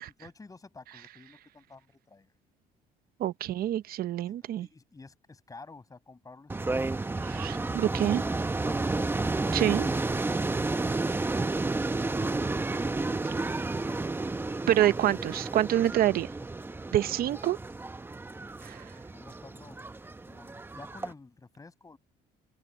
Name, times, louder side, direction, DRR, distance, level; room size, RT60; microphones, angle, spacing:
voice 1, 0.0-2.3 3.5-3.9 4.4-6.9 7.6-9.2 12.1-14.3 16.1-16.3 17.1-17.2 19.0-19.8 20.3-22.0, left 3 dB, 20° left, 7.3 m, -51 dB
voice 2, 3.2-4.7 7.2-8.2 9.5-9.9 14.7-16.3 16.9-17.6 18.6-18.9, right 12 dB, 65° right, 0.8 m, -27 dB
sound 1, 6.5-21.1, right 3 dB, 15° right, 0.8 m, -31 dB
cardioid pair, 110°, 17 cm